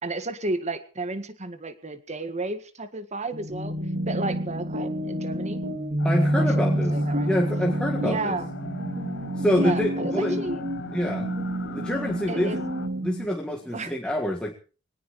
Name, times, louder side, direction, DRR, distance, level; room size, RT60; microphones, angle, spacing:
voice 1, 0.0-3.8 4.1-5.6 6.2-7.3 8.0-8.5 9.5-10.6 12.3-12.6 13.7-13.9, right 2 dB, 35° right, 11 dB, 1.8 m, -32 dB
sound 1, 3.3-13.3, right 1 dB, 55° right, 2.7 m, -28 dB
sound 2, 6.0-12.9, left 3 dB, 55° left, 1.2 m, -39 dB
voice 2, 6.0-6.9 7.2-8.4 9.4-10.4 10.9-11.3 11.7-12.6 13.0-14.6, equal, 5° left, -1 dB, 1.8 m, -26 dB
22.5 x 18.5 x 3.2 m, 0.37 s
head